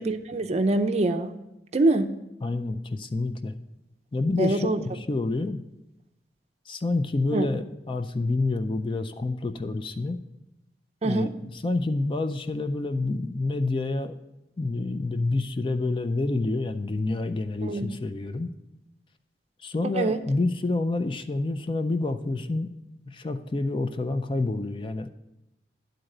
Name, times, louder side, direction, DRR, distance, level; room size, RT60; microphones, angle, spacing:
voice 1, 0.0-1.3 1.7-2.1 4.4-4.8 7.3-7.5 11.0-11.3 17.6-17.9 19.9-20.2, right 2 dB, 40° right, 7 dB, 0.5 m, -24 dB
voice 2, 2.4-3.5 4.1-5.6 6.7-10.2 11.0-14.1 14.6-18.5 19.6-22.7 23.1-25.1, left 2 dB, 30° left, 8 dB, 0.4 m, -28 dB
10.0 x 3.9 x 6.5 m, 0.91 s
head